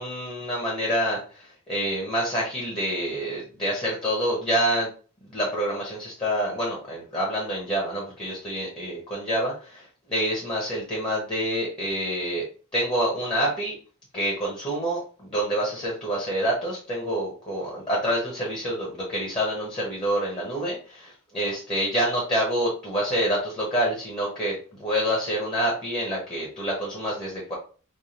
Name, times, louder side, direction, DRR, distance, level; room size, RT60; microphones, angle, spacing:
voice 1, 0.0-4.9 5.3-12.4 12.7-13.7 14.1-24.5 24.8-27.5, equal, 25° left, -4 dB, 1.1 m, -27 dB
3.5 x 2.2 x 4.3 m, 0.39 s
head